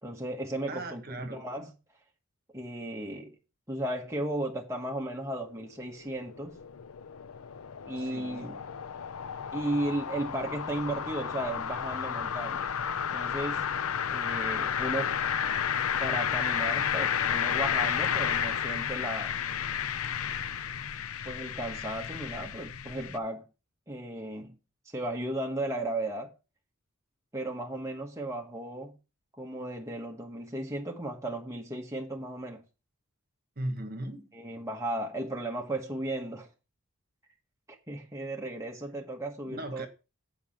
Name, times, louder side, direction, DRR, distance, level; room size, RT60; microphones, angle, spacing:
voice 1, 0.0-1.7 2.5-3.3 3.7-6.6 7.9-8.6 9.5-12.6 13.1-13.6 14.1-15.2 16.0-19.3 21.2-23.4 23.9-24.6 24.9-26.3 27.3-28.9 29.4-32.6 34.3-36.5 37.7-39.9, right 1 dB, 15° right, 1.2 m, -35 dB
voice 2, 0.7-1.5 7.9-8.6 33.5-34.3 39.4-39.9, right 1 dB, 45° right, 1.4 m, -38 dB
sound 1, 5.6-23.2, left 8 dB, 80° left, 0.6 m, -32 dB
8.4 x 5.2 x 7.2 m
head